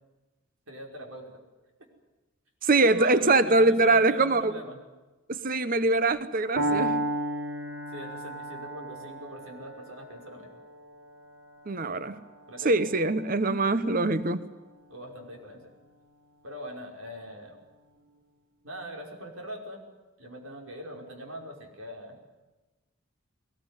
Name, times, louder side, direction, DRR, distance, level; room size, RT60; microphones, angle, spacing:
voice 1, 0.7-1.4 2.7-4.8 7.9-10.5 12.5-12.8 14.9-15.7 16.4-17.6 18.6-19.8 20.2-22.2, right 1 dB, 80° right, 1 dB, 5.3 m, -42 dB
voice 2, 2.6-4.5 5.3-7.0 11.7-12.2 12.6-14.5, right 2 dB, 40° right, 13 dB, 1.0 m, -23 dB
Piano, 6.6-14.5, right 1 dB, 55° right, 4.7 m, -34 dB
21.0 x 20.0 x 9.9 m, 1.2 s
head